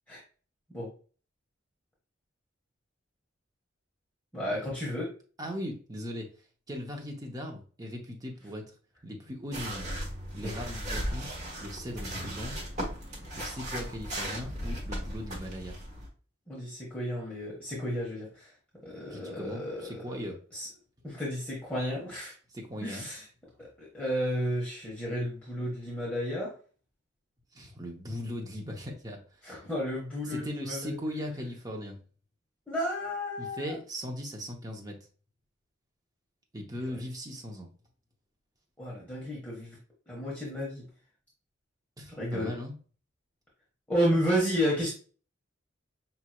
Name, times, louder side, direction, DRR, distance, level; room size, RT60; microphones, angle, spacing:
voice 1, 4.3-5.1 10.4-10.5 16.5-18.5 18.8-20.0 20.5-20.7 21.0-22.3 22.8-23.2 23.6-26.5 29.4-31.0 32.7-33.8 36.9-37.0 38.8-39.8 40.1-40.8 42.2-42.5 43.9-44.9, equal, 5° left, -6 dB, 1.1 m, -32 dB
voice 2, 5.4-6.3 6.7-8.7 9.0-9.9 10.3-11.3 11.6-12.6 13.3-15.8 19.1-20.4 22.5-23.1 27.5-29.2 30.2-32.0 33.4-35.0 36.5-37.7 42.0-42.7, equal, 20° right, 1 dB, 0.7 m, -38 dB
sound 1, 9.5-16.1, equal, 35° right, 1.1 m, -36 dB
5.3 x 3.0 x 2.2 m, 0.39 s
head